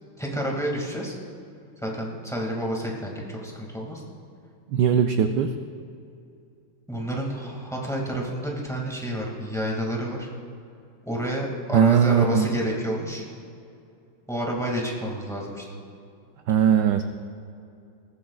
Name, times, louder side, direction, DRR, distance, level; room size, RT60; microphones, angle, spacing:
voice 1, 0.2-1.2 1.8-4.0 6.9-10.3 11.0-13.2 14.3-15.6, equal, ahead, -2 dB, 1.8 m, -29 dB
voice 2, 4.7-5.6 11.7-12.5 16.5-17.0, right 7 dB, 85° right, 7 dB, 0.9 m, -19 dB
19.5 x 14.5 x 2.4 m, 2.5 s
omnidirectional pair, 2.4 m